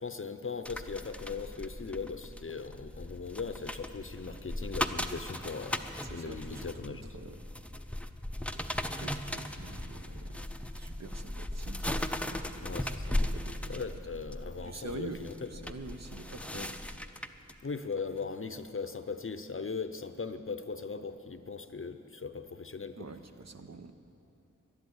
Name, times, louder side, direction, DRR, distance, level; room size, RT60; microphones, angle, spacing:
voice 1, 0.0-7.0 12.6-13.0 13.7-15.5 16.5-16.7 17.6-23.0, left 4 dB, 40° left, 9 dB, 0.7 m, -39 dB
sound 1, 0.7-17.5 18.0-18.2, left 1 dB, 5° left, 0.6 m, -38 dB
voice 2, 6.0-7.4 8.5-8.6 9.0-13.8 14.6-15.2 15.5-16.7 23.0-23.9, right 3 dB, 55° right, 7 dB, 0.9 m, -46 dB
12.0 x 10.5 x 8.0 m, 2.9 s
cardioid pair, 45°, 32 cm